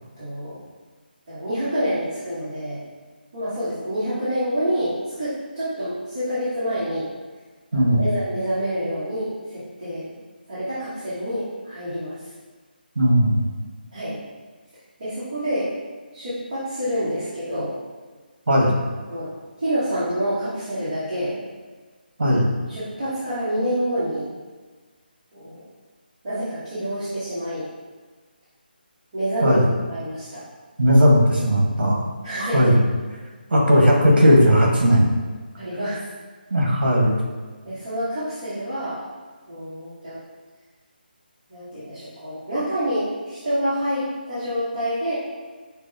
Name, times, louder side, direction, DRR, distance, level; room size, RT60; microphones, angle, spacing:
voice 1, 0.2-0.6 1.3-2.8 3.3-7.1 7.7-10.1 10.5-12.2 13.9-14.2 15.0-15.7 16.1-17.7 19.1-19.3 19.6-21.4 22.7-24.3 25.3-25.6 26.2-27.7 29.1-29.6 29.9-30.4 32.2-32.7 35.6-36.0 37.6-39.0 39.5-40.2 41.5-45.1, equal, 25° right, -14 dB, 0.9 m, -27 dB
voice 2, 7.7-8.0 13.0-13.4 18.5-18.8 22.2-22.5 29.4-29.7 30.8-32.0 32.4-32.8 33.5-35.1 36.5-37.2, equal, 65° right, -2 dB, 1.0 m, -17 dB
5.8 x 2.0 x 2.6 m, 1.4 s
hypercardioid pair, 180°, 6 cm